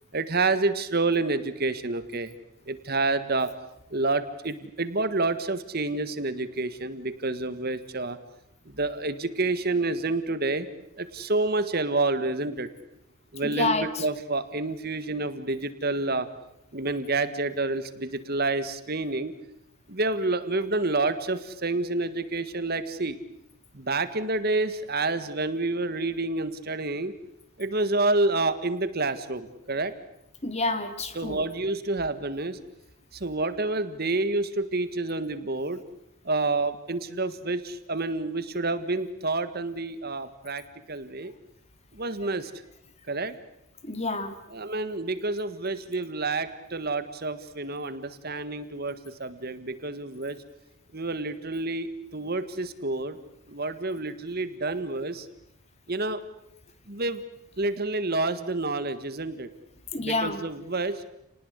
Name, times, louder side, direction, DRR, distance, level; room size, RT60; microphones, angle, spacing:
voice 1, 0.1-2.3 2.7-3.5 3.9-8.2 8.7-10.7 11.0-12.7 13.3-16.3 16.7-19.3 19.9-23.2 23.7-27.1 27.6-29.9 31.1-32.6 33.1-35.8 36.3-40.6 40.9-41.3 41.9-42.5 43.1-43.4 44.5-50.4 50.9-53.2 53.5-55.3 55.9-56.2 56.9-57.2 57.6-59.5 60.0-61.0, right 2 dB, 45° right, 12 dB, 1.7 m, -28 dB
voice 2, 13.4-13.9 30.4-31.4 43.9-44.3 59.9-60.4, left 3 dB, 30° left, 9 dB, 2.1 m, -28 dB
30.0 x 20.0 x 8.2 m, 0.81 s
head